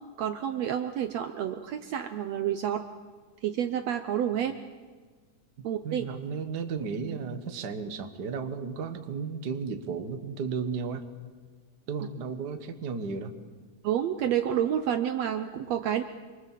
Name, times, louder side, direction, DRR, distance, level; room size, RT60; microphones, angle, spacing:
voice 1, 0.2-2.8 3.4-4.6 5.6-6.1 13.8-16.0, right 10 dB, 70° right, 8 dB, 1.9 m, -29 dB
voice 2, 5.8-11.1 11.9-13.3, right 5 dB, 40° right, 7 dB, 1.6 m, -34 dB
27.5 x 23.5 x 7.5 m, 1.5 s
omnidirectional pair, 3.5 m